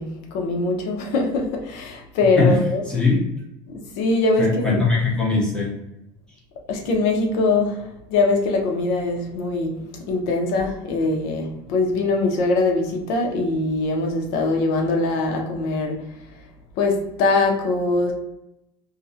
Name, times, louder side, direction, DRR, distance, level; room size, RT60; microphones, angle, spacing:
voice 1, 0.0-2.8 3.9-4.8 6.7-16.0 16.8-18.1, left 3 dB, 65° left, 2 dB, 0.6 m, -22 dB
voice 2, 2.4-3.3 4.4-5.7, left 3 dB, 5° left, -5 dB, 0.7 m, -20 dB
2.4 x 2.0 x 2.7 m, 0.87 s
cardioid pair, 170°, 11 cm